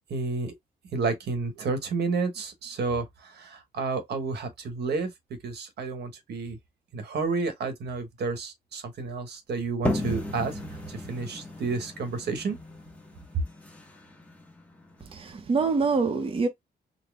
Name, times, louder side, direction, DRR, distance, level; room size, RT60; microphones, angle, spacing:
voice 1, 0.1-0.5 0.9-5.1 5.4-6.6 6.9-10.6 10.9-12.6, right 4 dB, 75° right, 1.1 m, -31 dB
sound 1, 9.9-15.3, left 1 dB, 10° left, 0.9 m, -35 dB
voice 2, 15.1-16.5, right 4 dB, 30° right, 0.7 m, -25 dB
4.1 x 2.1 x 3.4 m
cardioid pair, 125°, 17 cm